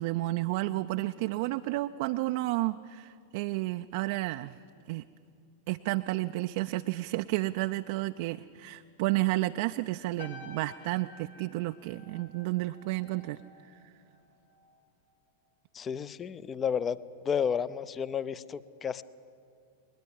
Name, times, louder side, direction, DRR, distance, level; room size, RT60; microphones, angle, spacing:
voice 1, 0.0-4.6 4.9-5.0 5.7-13.9, right 18 dB, 50° right, 9 dB, 0.4 m, -31 dB
sound 1, 10.2-14.8 15.1-15.5, left 3 dB, 65° left, 3.0 m, -52 dB
voice 2, 15.7-17.0 17.2-19.0, left 7 dB, 20° left, 18 dB, 0.6 m, -31 dB
21.0 x 20.0 x 7.3 m, 2.4 s
figure-of-eight pair, 90°, 0 cm